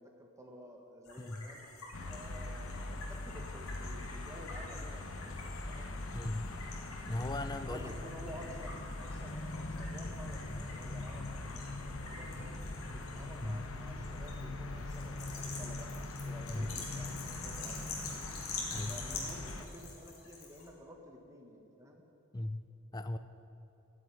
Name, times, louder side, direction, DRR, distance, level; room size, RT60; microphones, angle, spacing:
voice 1, 0.0-1.6 2.0-5.9 7.6-12.6 12.9-15.9 16.2-18.3 18.9-22.0, equal, 15° right, 1 dB, 1.5 m, -52 dB
sound 1, 1.1-20.7, left 4 dB, 85° left, 2.8 m, -47 dB
voice 2, 1.2-1.5 6.1-6.5 7.1-7.9 13.4-13.7 16.5-16.8 18.7-19.0 22.3-23.2, left 1 dB, 20° left, 11 dB, 0.4 m, -38 dB
sound 2, 1.9-19.7, left 2 dB, 70° left, 1.0 m, -42 dB
13.0 x 7.8 x 9.9 m, 2.9 s
head